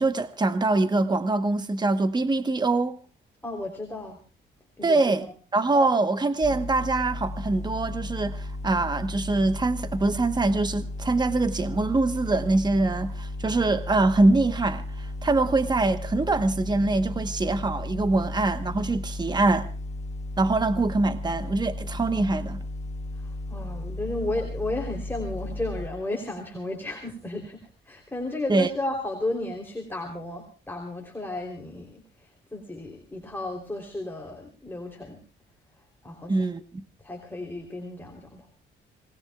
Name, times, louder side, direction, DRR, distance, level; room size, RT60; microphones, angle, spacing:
voice 1, 0.0-3.0 4.8-5.3 5.5-19.7 20.4-22.6 28.5-28.7 36.3-36.6, right 2 dB, 20° right, 1.1 m, -24 dB
voice 2, 3.4-4.2 4.8-5.3 23.2-35.2 35.8-36.4 37.0-38.5, left 2 dB, 10° left, 3.5 m, -34 dB
sound 1, 6.4-25.9, left 2 dB, 35° left, 1.2 m, -35 dB
26.5 x 20.0 x 2.4 m
cardioid pair, 90°, 20 cm